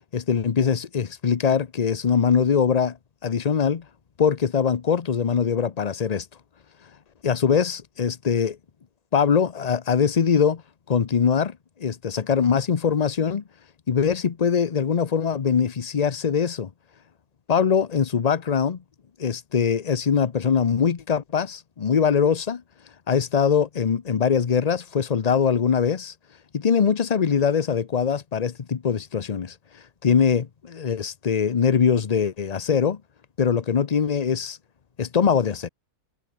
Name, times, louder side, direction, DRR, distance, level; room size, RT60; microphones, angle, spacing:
voice 1, 0.1-3.0 3.2-3.8 4.2-6.3 7.2-8.6 9.1-10.6 10.9-13.4 13.9-16.7 17.5-18.8 19.2-22.6 23.1-26.1 26.5-29.5 30.0-33.0 33.4-34.6 35.0-35.7, left 6 dB, 40° left, 0.6 m, -22 dB
omnidirectional pair, 1.7 m